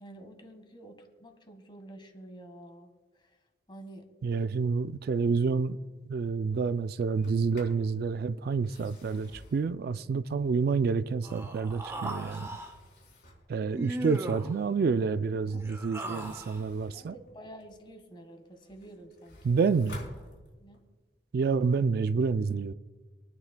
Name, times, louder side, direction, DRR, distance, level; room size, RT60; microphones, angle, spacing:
voice 1, 0.0-3.4 3.7-4.1 11.6-12.6 15.5-15.6 16.9-19.6 20.6-20.8, right 1 dB, 30° left, 1.5 m, -49 dB
voice 2, 4.2-5.8 6.0-12.5 13.5-17.1 19.4-20.0 21.3-22.7, right 5 dB, 60° right, 0.3 m, -28 dB
Sliding door, 7.1-7.9 8.5-10.9 11.4-13.6 16.0-17.9 18.4-20.9, left 1 dB, 60° left, 4.0 m, -52 dB
Human voice, 11.2-12.7 13.7-14.6 15.5-16.6, right 1 dB, 15° right, 1.1 m, -38 dB
26.5 x 9.7 x 2.2 m
head